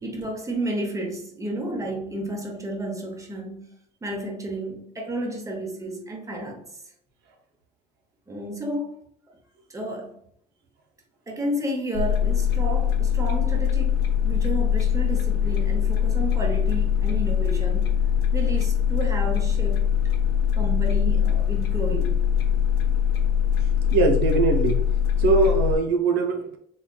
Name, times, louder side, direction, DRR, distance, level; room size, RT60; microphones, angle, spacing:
voice 1, 0.0-3.7 4.0-6.7 8.3-8.9 9.3-9.4 9.7-10.1 11.3-14.0 14.2-18.0 18.3-19.9 20.5-22.2, right 1 dB, 20° right, 1.0 m, -31 dB
sound 1, 11.9-25.8, left 8 dB, 75° left, 0.7 m, -22 dB
voice 2, 23.9-24.8 25.2-26.6, right 3 dB, 90° right, 0.7 m, -21 dB
3.9 x 3.2 x 2.3 m
cardioid pair, 110°, 17 cm